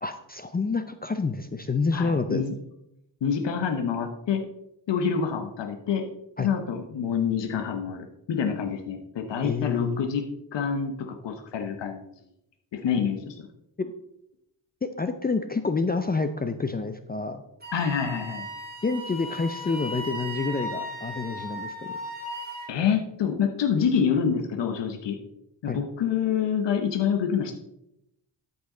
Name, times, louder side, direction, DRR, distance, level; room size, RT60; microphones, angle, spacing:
voice 1, 0.0-2.4 6.4-6.5 9.4-10.1 13.8-13.9 14.8-17.4 18.8-22.0 25.7-25.8, left 4 dB, 20° left, 9 dB, 0.6 m, -28 dB
voice 2, 1.9-2.5 3.2-4.4 4.9-6.0 6.4-10.2 10.5-12.1 12.7-13.5 17.7-18.5 22.7-25.2 25.6-27.6, left 7 dB, 65° left, 4 dB, 1.1 m, -27 dB
Wind instrument woodwind instrument, 17.6-22.7, equal, 20° right, 3.1 m, -36 dB
12.5 x 5.5 x 3.9 m, 0.82 s
cardioid pair, 80°, 45 cm